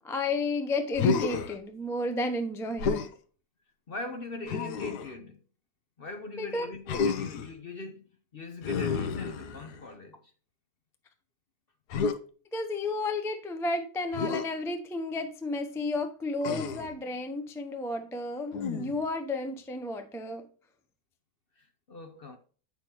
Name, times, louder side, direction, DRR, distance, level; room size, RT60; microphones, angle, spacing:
voice 1, 0.0-3.1 6.4-6.7 12.5-20.4, left 2 dB, 5° left, 0.3 m, -32 dB
Human voice, 0.9-1.6 2.8-3.1 4.5-5.1 6.9-7.5 8.6-9.9 11.9-12.2 14.1-14.5 16.4-16.9 18.5-19.1, left 5 dB, 85° left, 1.3 m, -30 dB
voice 2, 3.9-5.4 6.0-8.1 8.3-10.3 21.6-22.4, left 2 dB, 50° left, 0.8 m, -41 dB
8.8 x 5.9 x 2.9 m
omnidirectional pair, 1.7 m